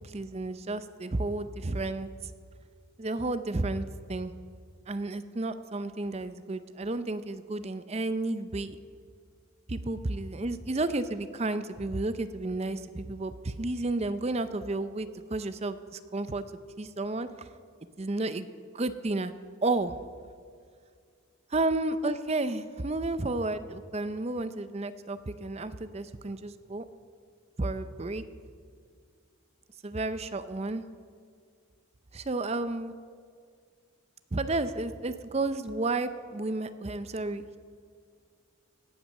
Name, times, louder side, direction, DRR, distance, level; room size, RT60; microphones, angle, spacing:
voice 1, 0.0-2.1 3.0-4.3 4.9-8.8 9.7-16.4 16.8-17.5 18.0-18.5 18.7-19.3 19.6-20.0 21.5-26.8 27.6-28.2 29.8-30.8 32.1-32.9 34.3-37.6, right 2 dB, 30° right, 12 dB, 0.5 m, -32 dB
17.0 x 9.2 x 6.5 m, 2.1 s
head